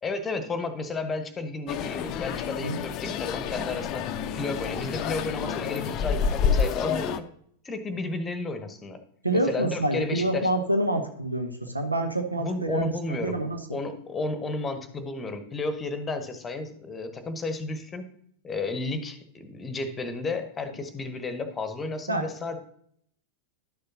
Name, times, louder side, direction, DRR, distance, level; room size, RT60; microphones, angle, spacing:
voice 1, 0.0-4.1 4.3-7.3 7.6-9.0 9.3-10.5 12.4-13.4 13.7-18.1 18.4-22.6, left 3 dB, 20° left, 9 dB, 1.0 m, -32 dB
sound 1, 1.7-7.2, left 6 dB, 35° left, 0.5 m, -29 dB
voice 2, 9.2-13.6 22.1-22.2, right 1 dB, 85° right, 6 dB, 0.8 m, -27 dB
11.5 x 6.7 x 2.8 m, 0.66 s
figure-of-eight pair, 90°, 0 cm